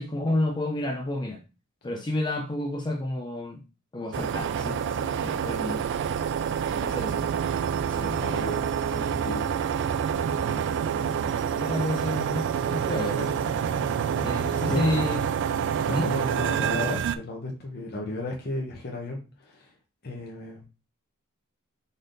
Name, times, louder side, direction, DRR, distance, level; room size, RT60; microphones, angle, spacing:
voice 1, 0.0-1.4 1.8-3.6 3.9-5.9 6.8-7.3 7.8-8.2 10.5-10.6 11.6-13.6 14.2-15.2 15.9-16.1, left 1 dB, 20° left, 0.4 m, -30 dB
sound 1, 4.1-17.2, right 7 dB, 55° right, 0.3 m, -27 dB
voice 2, 8.2-8.6 8.9-9.5 14.2-15.1 15.9-19.7 20.0-20.6, left 2 dB, 45° left, 1.0 m, -34 dB
4.0 x 3.4 x 3.9 m
head